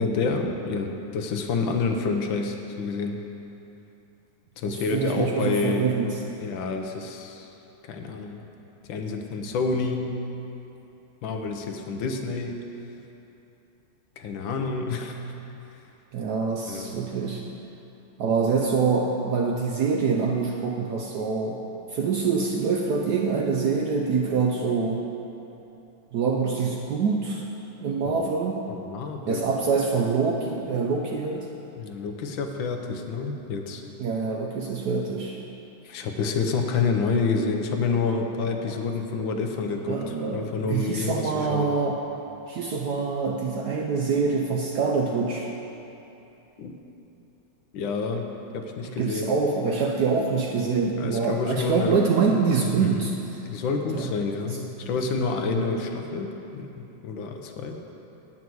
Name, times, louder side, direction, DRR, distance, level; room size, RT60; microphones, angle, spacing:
voice 1, 0.0-3.2 4.6-5.9 6.4-7.5 7.8-8.4 8.9-10.2 11.2-12.6 14.2-15.2 16.7-17.0 28.0-28.3 28.7-29.4 31.8-33.8 35.8-41.7 46.6-46.8 47.7-48.3 48.5-49.4 51.0-52.0 52.8-53.1 53.4-57.8, left 4 dB, 75° left, 4 dB, 1.5 m, -28 dB
voice 2, 4.7-6.2 16.1-17.5 18.2-21.6 21.9-25.1 26.1-27.5 27.8-28.7 29.3-31.5 34.0-35.4 39.9-42.0 42.5-45.5 49.0-53.4 53.9-54.1 54.8-54.9, right 5 dB, 70° right, 1 dB, 1.0 m, -25 dB
9.1 x 5.9 x 7.7 m, 3.0 s
omnidirectional pair, 2.3 m